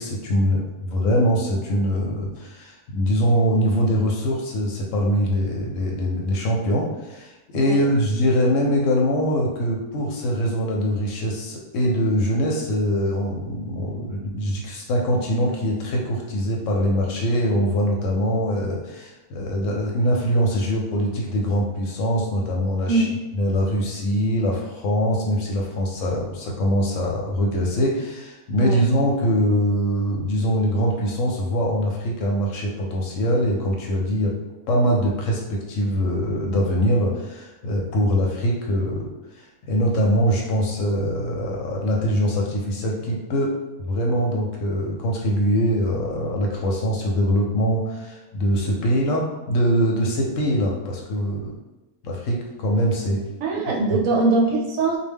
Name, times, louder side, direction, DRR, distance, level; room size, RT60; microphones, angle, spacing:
voice 1, 0.0-23.1 23.3-34.3 34.7-39.1 39.3-51.5 52.0-53.2, equal, 70° left, -1 dB, 0.8 m, -23 dB
voice 2, 28.6-28.9 53.4-55.0, right 3 dB, 75° right, -1 dB, 0.9 m, -22 dB
2.3 x 2.1 x 3.4 m, 1.0 s
omnidirectional pair, 1.5 m